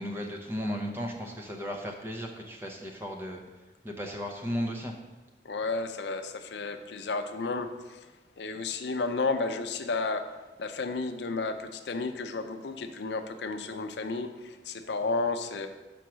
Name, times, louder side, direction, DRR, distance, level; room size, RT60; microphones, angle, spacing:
voice 1, 0.0-3.4 3.8-4.9, equal, 15° right, 1 dB, 0.7 m, -35 dB
voice 2, 5.4-8.1 8.4-10.3 10.6-15.7, left 3 dB, 80° left, 8 dB, 0.5 m, -32 dB
5.8 x 4.6 x 6.2 m, 1.2 s
head